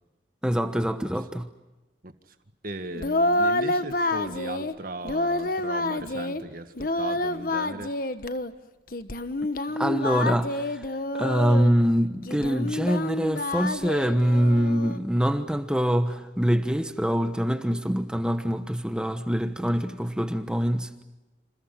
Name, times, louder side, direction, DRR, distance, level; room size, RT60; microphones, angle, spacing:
voice 1, 0.4-1.5 9.8-10.9 11.1-20.9, equal, 5° right, 1.1 m, -24 dB
voice 2, 2.6-7.9, right 2 dB, 50° right, 1.9 m, -37 dB
Singing, 2.9-4.7 5.0-6.4 6.8-8.5 8.9-11.7 12.3-15.0, left 2 dB, 50° left, 1.3 m, -28 dB
29.0 x 28.0 x 5.9 m
head